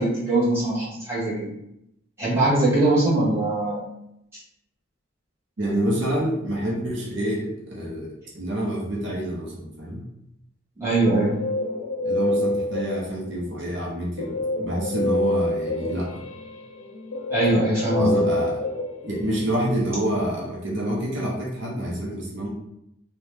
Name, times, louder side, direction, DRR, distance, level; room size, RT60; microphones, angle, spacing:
voice 1, 0.0-1.5 2.2-3.8 10.8-11.4 17.3-18.1, right 2 dB, 10° right, -9 dB, 0.9 m, -21 dB
voice 2, 5.6-10.1 12.0-16.2 17.9-18.6 19.0-22.5, right 1 dB, 60° right, -3 dB, 0.6 m, -27 dB
Guitar, 10.9-13.4 14.2-19.6, left 1 dB, 75° left, 0.6 m, -27 dB
2.7 x 2.1 x 3.2 m, 0.80 s
head